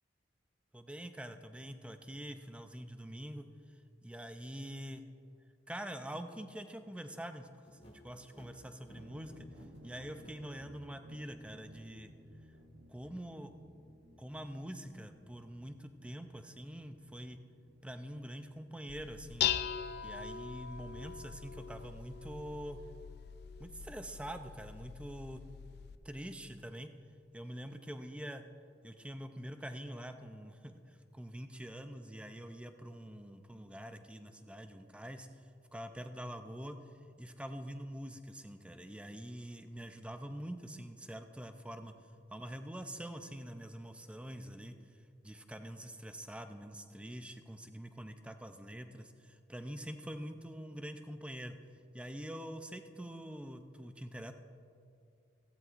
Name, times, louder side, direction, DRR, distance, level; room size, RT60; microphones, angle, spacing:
voice 1, 0.7-3.5 4.0-5.0 5.7-9.5 9.8-12.1 12.9-13.5 14.2-17.4 17.8-19.5 20.0-22.8 23.6-25.4 26.0-26.9 27.3-28.4 28.8-35.4 35.7-36.8 37.2-41.9 42.3-45.0 45.2-51.6 51.9-54.3, equal, 5° right, 7 dB, 0.5 m, -45 dB
sound 1, 7.6-10.4, equal, 35° left, 1.9 m, -57 dB
sound 2, 8.9-26.0, equal, 80° right, 1.0 m, -60 dB
Dishes pots and pans, 18.9-26.0, left 10 dB, 60° left, 0.4 m, -40 dB
15.5 x 14.0 x 2.5 m, 2.3 s
head